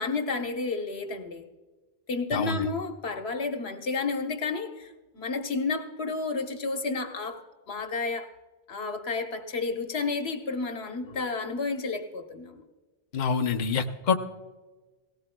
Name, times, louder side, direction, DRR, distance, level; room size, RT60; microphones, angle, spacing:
voice 1, 0.0-1.5 2.1-8.3 8.7-12.6, left 4 dB, 80° left, 5 dB, 1.3 m, -31 dB
voice 2, 2.3-2.6 13.1-14.1, left 5 dB, 50° left, 5 dB, 0.8 m, -26 dB
18.5 x 17.5 x 2.2 m, 1.3 s
omnidirectional pair, 1.1 m